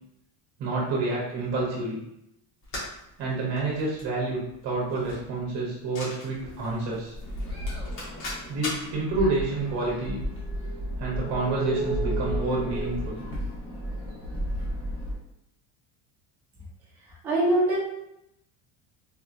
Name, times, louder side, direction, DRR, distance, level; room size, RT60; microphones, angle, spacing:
voice 1, 0.6-2.0 3.2-7.2 8.5-10.2 11.0-13.2, right 2 dB, 35° right, -4 dB, 0.7 m, -28 dB
sound 1, 2.6-9.0, left 1 dB, 70° left, 1.5 m, -40 dB
sound 2, 7.2-15.1, equal, 25° left, 1.0 m, -32 dB
voice 2, 17.2-17.8, right 1 dB, 5° right, -5 dB, 0.3 m, -22 dB
3.5 x 2.7 x 2.4 m, 0.82 s
cardioid pair, 175°, 44 cm